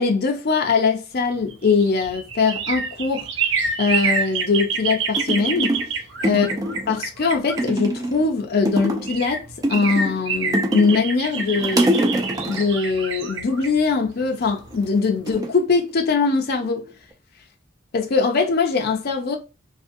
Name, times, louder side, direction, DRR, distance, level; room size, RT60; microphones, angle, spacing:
voice 1, 0.0-3.3 3.8-5.7 6.2-6.5 6.9-11.9 12.5-16.8 17.9-19.4, left 4 dB, 50° left, 0.5 m, -21 dB
sound 1, 1.4-8.2 8.8-8.9 9.1-14.8 15.2-15.3, right 5 dB, 60° right, 0.6 m, -27 dB
sound 2, 4.7-4.8 5.2-5.9 6.2-7.0 7.6-8.3 8.6-9.2 9.6-11.0 11.3-12.7 14.3-14.8 15.3-16.3 16.6-17.1, right 1 dB, 15° right, 0.4 m, -25 dB
2.7 x 2.4 x 2.6 m
head